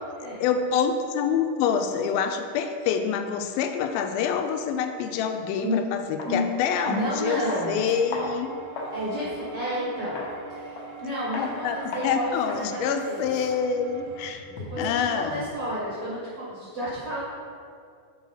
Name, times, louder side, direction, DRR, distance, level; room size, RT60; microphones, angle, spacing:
voice 1, 0.4-8.5 11.4-14.4 14.8-15.5, left 7 dB, 85° left, 6 dB, 2.4 m, -26 dB
sound 1, 5.6-5.7 6.2-6.4 6.9-7.1 7.5-9.0 9.4-9.5 10.2-10.4 10.8-11.0 11.3-11.5 11.9-12.1 12.5-12.7 13.0-14.9, left 3 dB, 65° left, 1.8 m, -37 dB
voice 2, 6.9-7.8 8.9-10.2 10.5-13.3 14.5-17.2, equal, 65° right, -7 dB, 1.5 m, -31 dB
sound 2, 7.0-14.3, right 7 dB, 85° right, 1.8 m, -43 dB
7.3 x 4.6 x 5.4 m, 2.3 s
omnidirectional pair, 4.2 m